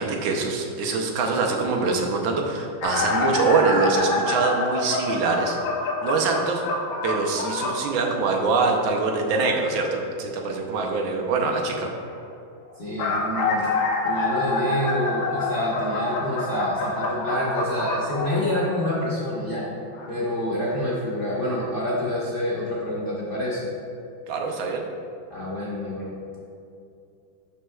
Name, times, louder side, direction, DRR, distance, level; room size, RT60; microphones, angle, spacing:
voice 1, 0.0-5.6 6.0-6.6 7.0-11.9 24.3-24.8, right 4 dB, 75° right, 2 dB, 1.6 m, -24 dB
sound 1, 2.8-7.8 12.7-18.8 19.9-20.1 21.1-21.2 21.6-21.7, left 3 dB, 75° left, 1.6 m, -27 dB
voice 2, 12.8-13.7 14.0-19.7 20.1-23.7 25.3-26.1, left 1 dB, 35° left, -6 dB, 0.9 m, -27 dB
11.0 x 6.2 x 2.3 m, 2.6 s
omnidirectional pair, 2.2 m